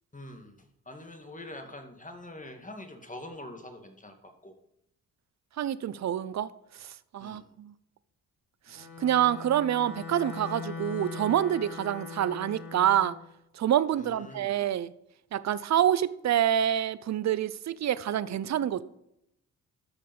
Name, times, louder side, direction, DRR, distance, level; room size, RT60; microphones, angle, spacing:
voice 1, 0.1-4.5 7.2-7.5 13.9-14.6, left 1 dB, 20° left, 2.2 m, -45 dB
voice 2, 5.6-6.5 6.7-7.7 8.7-13.2 13.5-14.9 15.3-18.8, right 10 dB, 45° right, 0.7 m, -27 dB
Bowed string instrument, 8.7-13.2, left 5 dB, 75° left, 2.3 m, -41 dB
13.0 x 5.4 x 5.4 m
hypercardioid pair, 50°, 40 cm